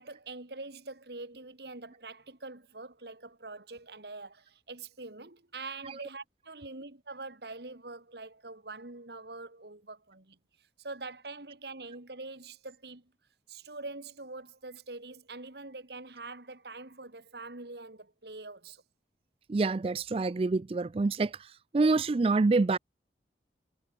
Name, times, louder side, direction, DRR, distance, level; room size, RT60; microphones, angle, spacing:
voice 1, 0.0-13.1 13.5-18.8, right 3 dB, 70° right, 2.4 m, -44 dB
voice 2, 19.5-21.3 21.7-22.8, right 3 dB, 30° right, 0.3 m, -26 dB
head